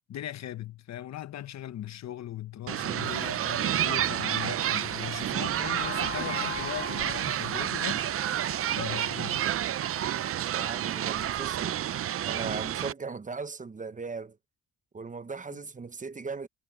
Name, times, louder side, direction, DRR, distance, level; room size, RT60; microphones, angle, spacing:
voice 1, 0.1-8.4 8.7-9.5 15.5-15.6, left 12 dB, 60° left, 1.1 m, -39 dB
sound 1, 2.7-12.9, right 11 dB, 50° right, 0.6 m, -30 dB
sound 2, 5.8-10.3, left 9 dB, 40° left, 1.0 m, -43 dB
voice 2, 10.5-11.8 12.3-14.4 14.9-16.5, right 4 dB, 25° right, 1.0 m, -38 dB
cardioid pair, 90°, 30 cm